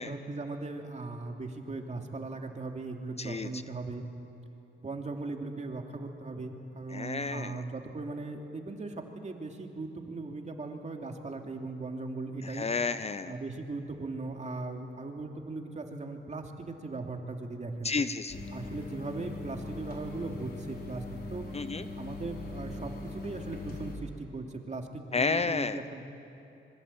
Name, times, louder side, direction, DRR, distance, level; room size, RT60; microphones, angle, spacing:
voice 1, 0.0-4.0 4.8-12.7 13.2-17.9 18.5-21.0 21.3-21.4 22.0-26.0, right 3 dB, 35° right, 3 dB, 2.9 m, -38 dB
voice 2, 3.2-3.5 6.9-7.6 12.4-13.3 17.8-18.4 21.5-21.8 25.1-25.8, left 4 dB, 30° left, 12 dB, 0.7 m, -31 dB
sound 1, 18.3-24.0, left 2 dB, 50° left, 4.5 m, -41 dB
26.0 x 22.5 x 8.8 m, 2.8 s
cardioid pair, 85°, 20 cm